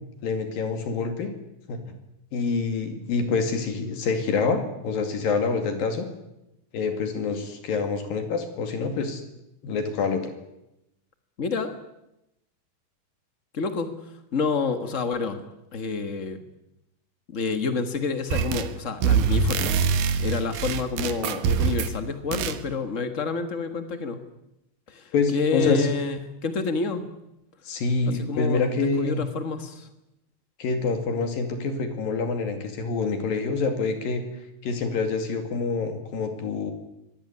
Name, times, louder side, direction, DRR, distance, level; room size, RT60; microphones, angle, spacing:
voice 1, 0.2-1.3 1.7-2.0 2.3-6.1 6.7-9.2 9.6-10.3 25.1-25.9 27.7-29.2 30.6-34.2 34.6-36.7, left 4 dB, 75° left, 7 dB, 4.1 m, -26 dB
voice 2, 11.4-11.8 13.5-15.4 15.7-16.4 17.3-24.2 24.9-27.1 28.1-29.9, left 4 dB, 60° left, 9 dB, 0.8 m, -29 dB
sound 1, 18.3-18.8 19.0-22.0 22.3-22.6, right 6 dB, 75° right, 3.1 m, -24 dB
25.0 x 21.0 x 9.7 m, 0.88 s
omnidirectional pair, 4.1 m